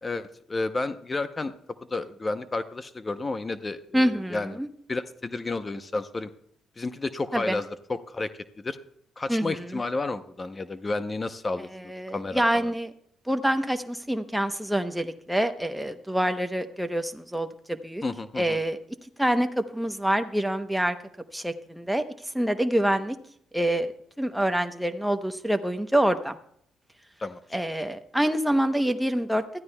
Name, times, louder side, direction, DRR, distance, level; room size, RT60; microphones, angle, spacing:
voice 1, 0.0-1.5 1.9-4.6 4.9-6.3 6.8-8.3 8.6-8.8 9.2-11.7 12.1-12.7 18.0-18.6 27.2-27.4, left 3 dB, 25° left, 11 dB, 0.7 m, -31 dB
voice 2, 3.9-4.7 7.3-7.6 9.3-9.7 11.7-12.9 13.3-18.0 18.4-18.8 19.2-21.0 21.3-22.0 22.3-23.2 23.5-23.9 24.2-26.4 27.5-29.4, right 1 dB, 5° right, 7 dB, 0.8 m, -26 dB
20.5 x 13.0 x 2.2 m, 0.67 s
cardioid pair, 90°, 0 cm